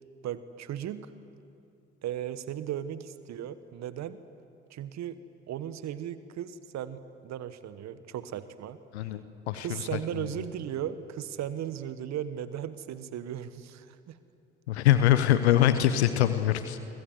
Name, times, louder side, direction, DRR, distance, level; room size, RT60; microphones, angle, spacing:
voice 1, 0.2-1.1 2.0-4.2 4.7-5.2 5.5-9.1 9.5-14.2, right 10 dB, 55° right, 13 dB, 1.4 m, -36 dB
voice 2, 9.5-10.3 14.7-16.8, left 12 dB, 80° left, 11 dB, 1.1 m, -24 dB
27.5 x 25.5 x 8.0 m, 2.6 s
figure-of-eight pair, 50°, 33 cm